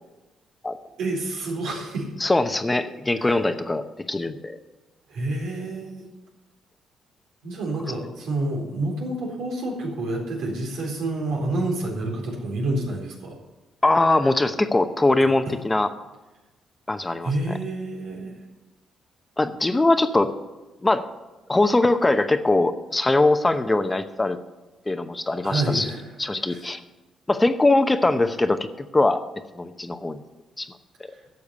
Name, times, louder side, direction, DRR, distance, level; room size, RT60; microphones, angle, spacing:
voice 1, 1.0-2.1 3.2-3.4 5.1-6.1 7.4-13.4 17.2-18.4 25.4-26.2 26.5-26.6, right 2 dB, 85° right, -1 dB, 4.0 m, -28 dB
voice 2, 2.2-4.6 13.8-15.9 16.9-17.3 19.4-20.3 20.8-21.1 21.5-24.4 24.9-25.9 26.2-26.8 27.3-29.2 29.5-30.2 30.6-30.7, left 2 dB, 15° left, 9 dB, 0.8 m, -21 dB
12.0 x 7.1 x 8.2 m, 1.1 s
cardioid pair, 90°, 0 cm